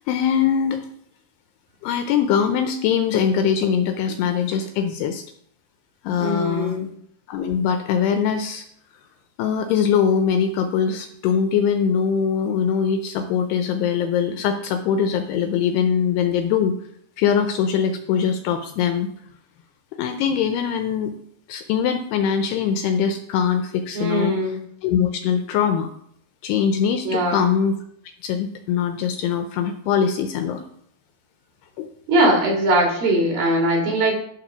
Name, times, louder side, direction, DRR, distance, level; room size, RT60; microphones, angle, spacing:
voice 1, 0.1-0.9 1.8-5.2 6.0-6.8 7.3-8.6 9.4-16.7 17.2-19.1 20.0-21.1 21.5-24.4 24.8-25.9 26.4-27.7 28.2-30.6 31.8-31.9, left 7 dB, 80° left, 7 dB, 2.5 m, -22 dB
voice 2, 6.2-6.9 24.0-24.6 27.1-27.4 32.1-34.2, right 1 dB, 55° right, -1 dB, 3.7 m, -20 dB
12.5 x 4.4 x 5.9 m, 0.69 s
omnidirectional pair, 5.2 m